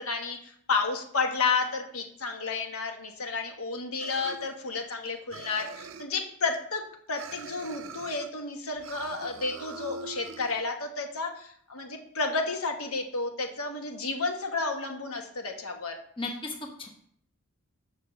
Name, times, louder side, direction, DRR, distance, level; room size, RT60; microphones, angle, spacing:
voice 1, 0.0-6.8 7.1-16.0, left 4 dB, 75° left, 4 dB, 1.2 m, -31 dB
sound 1, 4.0-5.0 5.3-6.2 7.1-8.3 8.8-10.6, right 5 dB, 60° right, 0.5 m, -43 dB
voice 2, 16.2-16.9, left 3 dB, 20° left, 1 dB, 0.9 m, -35 dB
6.8 x 4.7 x 6.9 m, 0.65 s
head